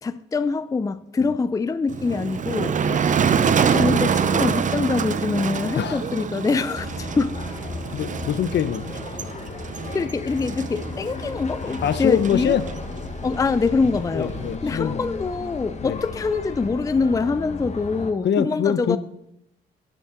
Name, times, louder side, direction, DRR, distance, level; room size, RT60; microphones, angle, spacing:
voice 1, 0.0-2.8 3.7-7.4 9.9-12.6 13.2-14.3 14.6-19.0, left 4 dB, 15° left, 0.4 m, -24 dB
Motor vehicle (road), 1.9-14.6, right 7 dB, 40° right, 0.6 m, -26 dB
sound 1, 6.8-18.1, left 3 dB, 35° left, 1.2 m, -34 dB
voice 2, 7.9-9.3 11.8-12.6 14.1-15.0 15.8-16.0 18.2-19.0, left 8 dB, 60° left, 0.7 m, -24 dB
12.5 x 8.4 x 3.7 m
cardioid pair, 90°, 20 cm